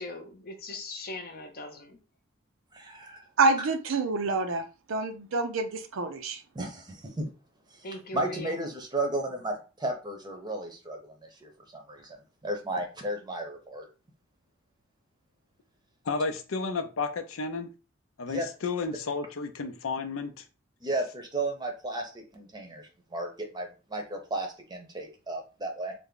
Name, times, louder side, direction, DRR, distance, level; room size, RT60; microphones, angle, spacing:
voice 1, 0.0-2.0 7.8-8.6, left 2 dB, 50° left, 0.7 m, -40 dB
voice 2, 2.7-3.2 6.5-7.3 7.7-12.2 12.4-13.9 18.3-18.5 20.8-25.9, right 2 dB, 20° right, 0.7 m, -34 dB
voice 3, 3.4-6.4, right 3 dB, 75° right, 0.6 m, -27 dB
voice 4, 16.1-17.7 18.2-20.4, left 4 dB, 90° left, 0.5 m, -32 dB
3.4 x 2.1 x 3.8 m
head